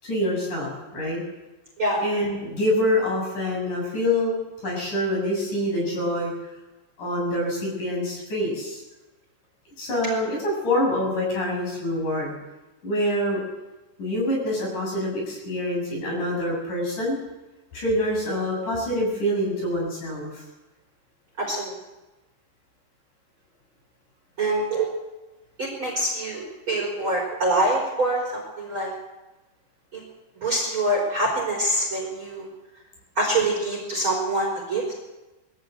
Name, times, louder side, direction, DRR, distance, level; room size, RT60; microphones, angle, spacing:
voice 1, 0.0-1.2 2.0-4.3 4.6-6.3 7.0-8.8 9.8-12.3 12.8-13.4 14.0-17.2 17.7-20.4, left 1 dB, 40° left, -2 dB, 8.5 m, -26 dB
voice 2, 21.4-21.7 24.4-24.9 25.6-28.9 29.9-30.0 30.4-32.5 33.2-34.9, right 1 dB, 25° right, -1 dB, 4.7 m, -25 dB
21.5 x 15.5 x 8.2 m, 1.1 s
omnidirectional pair, 5.4 m